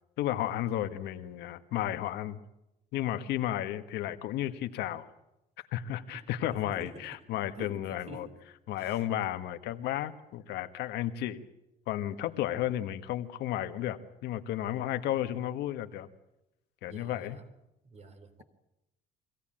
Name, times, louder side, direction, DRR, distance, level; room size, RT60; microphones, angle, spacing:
voice 1, 0.2-2.4 2.9-5.1 5.7-8.3 8.7-11.4 11.9-16.1 16.8-17.4, left 12 dB, 85° left, 9 dB, 1.6 m, -33 dB
voice 2, 6.6-8.3 8.8-9.1 16.9-17.5 17.8-18.4, right 3 dB, 40° right, 9 dB, 3.7 m, -49 dB
24.5 x 17.0 x 9.0 m, 0.90 s
cardioid pair, 110°, 17 cm